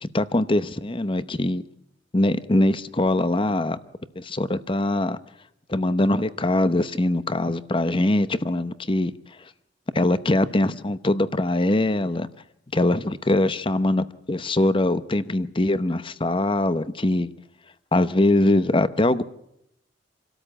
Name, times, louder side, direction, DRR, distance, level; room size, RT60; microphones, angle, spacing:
voice 1, 0.0-1.6 2.1-3.8 4.2-5.2 5.7-9.1 9.9-12.3 12.7-17.3 17.9-19.2, left 1 dB, 30° left, 13 dB, 0.8 m, -22 dB
26.5 x 13.0 x 8.8 m, 0.79 s
head